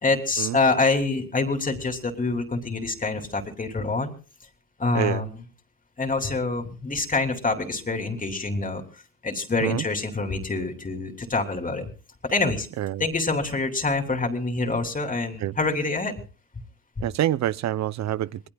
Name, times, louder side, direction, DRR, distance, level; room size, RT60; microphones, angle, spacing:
voice 1, 0.0-4.1 4.8-5.4 6.0-8.8 9.2-11.9 12.2-12.7 13.0-16.2 17.0-17.1, left 3 dB, 25° left, 3.1 m, -26 dB
voice 2, 17.0-18.4, right 12 dB, 65° right, 0.7 m, -26 dB
26.5 x 20.0 x 2.3 m
cardioid pair, 90°, 30 cm